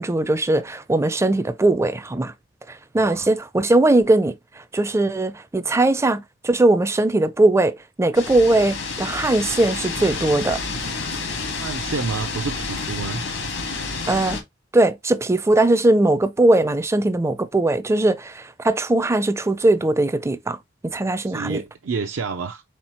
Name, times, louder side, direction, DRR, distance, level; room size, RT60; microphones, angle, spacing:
voice 1, 0.0-2.3 2.7-4.4 4.7-10.6 14.1-14.4 14.7-20.6 20.8-21.6, right 2 dB, 15° right, 0.4 m, -20 dB
voice 2, 3.0-3.3 11.6-13.2 21.3-22.6, right 4 dB, 75° right, 0.5 m, -29 dB
sound 1, 8.1-14.4, left 4 dB, 85° left, 1.5 m, -29 dB
4.4 x 3.9 x 2.9 m
head